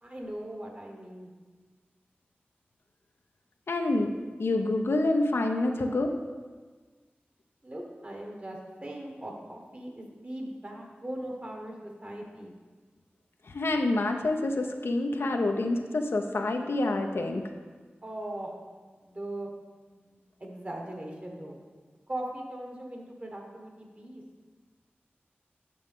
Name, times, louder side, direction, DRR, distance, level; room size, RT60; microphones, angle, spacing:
voice 1, 0.0-1.3 7.6-12.5 18.0-18.5 19.0-19.5 19.9-21.6 22.1-24.2, right 1 dB, 35° right, 1 dB, 1.5 m, -39 dB
voice 2, 3.7-4.1 4.4-6.2 13.5-17.5, left 2 dB, 85° left, 4 dB, 0.7 m, -27 dB
9.3 x 6.1 x 3.6 m, 1.4 s
wide cardioid pair, 65°, 4 cm